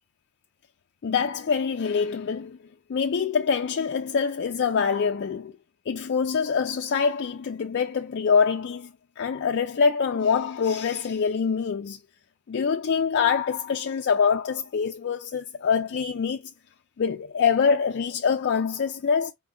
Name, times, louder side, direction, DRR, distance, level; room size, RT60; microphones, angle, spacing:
voice 1, 1.0-2.6 2.9-5.5 5.9-12.0 12.5-16.4 17.0-19.3, left 6 dB, 50° left, 0.4 m, -25 dB
4.8 x 2.2 x 3.6 m
head